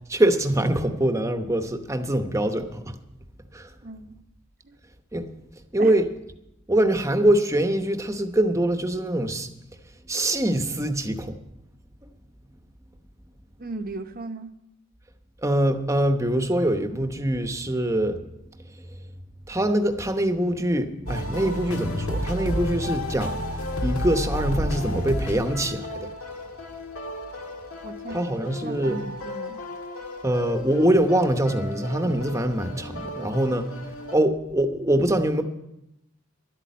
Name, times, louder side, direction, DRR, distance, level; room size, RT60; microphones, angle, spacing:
voice 1, 0.1-2.9 3.5-3.7 5.1-5.3 5.7-6.0 6.7-9.5 10.1-11.3 15.4-18.2 19.5-23.4 23.8-25.9 28.1-29.0 30.2-33.7 34.1-35.4, right 1 dB, 15° right, 7 dB, 0.9 m, -23 dB
voice 2, 3.8-4.1 4.6-4.8 5.8-5.9 13.6-14.5 27.8-28.2 28.6-29.6, right 2 dB, 40° right, 8 dB, 0.9 m, -36 dB
sound 1, 21.1-34.1, left 1 dB, 85° left, 1.6 m, -32 dB
12.0 x 8.6 x 9.3 m, 0.87 s
head